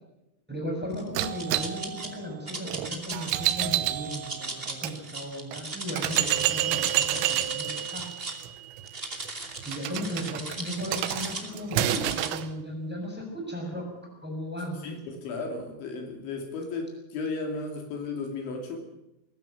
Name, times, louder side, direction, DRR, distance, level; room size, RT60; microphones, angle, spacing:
voice 1, 0.5-8.1 9.6-13.9 14.2-15.0, equal, ahead, 1 dB, 6.3 m, -36 dB
sound 1, 0.9-2.1 2.5-3.5 4.0-6.5 6.7-8.4 8.9-11.5 11.9-12.3, right 3 dB, 20° right, 1.4 m, -37 dB
sound 2, 1.2-5.0 5.5-5.6 6.0-12.5, right 13 dB, 85° right, 3.6 m, -30 dB
voice 2, 14.8-18.8, left 3 dB, 70° left, 3 dB, 5.0 m, -34 dB
21.0 x 14.5 x 9.2 m, 0.89 s
omnidirectional pair, 5.6 m